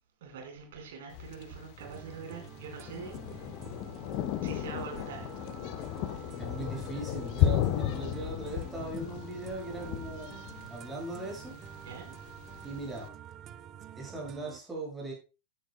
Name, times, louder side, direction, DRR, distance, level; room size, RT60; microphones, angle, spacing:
voice 1, 0.2-3.6 4.4-5.3 11.8-12.1, right 5 dB, 55° right, 4.5 m, -44 dB
Thunder, 1.1-13.1, left 11 dB, 45° left, 0.9 m, -35 dB
sound 1, 1.8-14.6, right 10 dB, 30° right, 0.7 m, -48 dB
voice 2, 6.1-10.4 10.7-11.5 12.6-13.1 14.0-15.1, right 2 dB, 10° right, 7.1 m, -39 dB
14.5 x 10.0 x 2.2 m
figure-of-eight pair, 90°, 0 cm